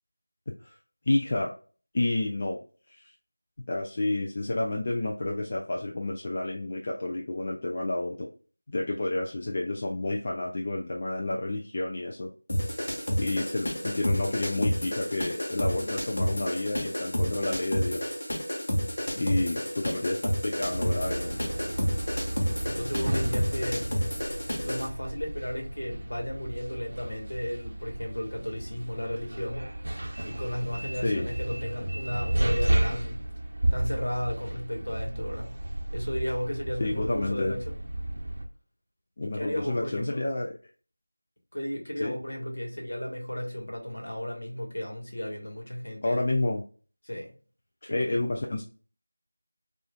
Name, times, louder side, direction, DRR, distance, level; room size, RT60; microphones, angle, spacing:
voice 1, 1.1-1.5 1.9-3.1 3.7-8.3 8.7-12.3 13.2-18.1 19.1-21.5 31.0-31.3 36.8-37.5 39.2-40.5 42.0-42.2 46.0-46.6 47.8-48.6, left 2 dB, 35° left, 0 dB, 0.4 m, -30 dB
sound 1, 12.5-24.9, equal, 50° left, 1.2 m, -30 dB
sound 2, 20.7-38.4, right 1 dB, 55° right, 0.7 m, -32 dB
voice 2, 22.7-23.9 24.6-29.7 30.3-33.2 33.7-35.5 35.9-37.8 39.2-40.2 41.5-46.2 47.0-47.3 47.9-48.2, equal, 65° left, 1 dB, 1.4 m, -34 dB
4.8 x 2.5 x 2.3 m, 0.39 s
figure-of-eight pair, 170°, 0 cm